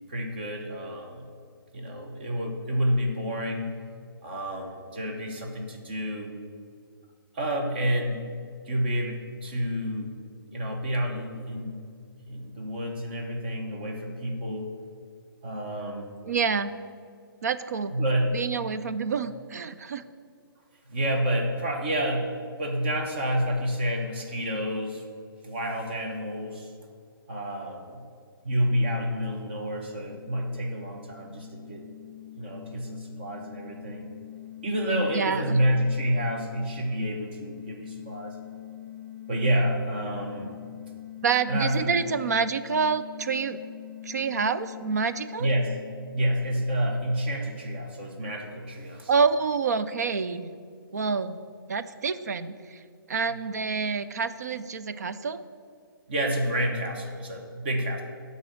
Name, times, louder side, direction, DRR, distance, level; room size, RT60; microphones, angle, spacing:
voice 1, 0.1-1.2 1.7-3.7 4.2-6.4 7.3-8.2 8.7-10.1 10.5-11.8 12.3-14.7 15.4-16.1 17.9-18.3 20.9-25.0 25.4-26.7 27.3-28.0 28.4-31.8 32.4-34.1 34.6-38.4 39.3-40.5 41.5-41.9 45.4-45.7 46.1-49.1 56.1-58.0, equal, 25° right, 2 dB, 1.0 m, -29 dB
voice 2, 16.2-16.7 17.4-18.0 18.3-20.0 35.1-35.6 41.2-43.6 44.0-45.5 49.1-50.5 50.9-51.4 51.7-52.8 53.1-55.4, right 5 dB, 45° right, 12 dB, 0.4 m, -27 dB
sound 1, 29.3-46.8, left 12 dB, 15° left, 1.6 m, -44 dB
11.5 x 4.2 x 7.6 m, 2.2 s
hypercardioid pair, 175°, 12 cm